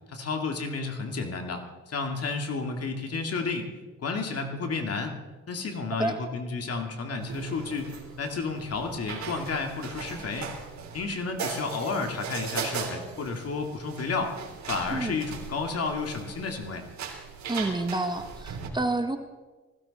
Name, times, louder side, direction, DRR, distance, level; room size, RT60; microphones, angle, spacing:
voice 1, 0.1-3.7 4.0-5.2 5.5-10.5 10.9-14.3 14.7-16.8, left 4 dB, 50° left, 4 dB, 2.6 m, -31 dB
sound 1, 7.2-18.7, right 6 dB, 65° right, 3.3 m, -38 dB
voice 2, 17.5-19.2, right 2 dB, 15° right, 6 dB, 1.4 m, -29 dB
20.0 x 16.0 x 4.3 m, 1.2 s
cardioid pair, 90°, 30 cm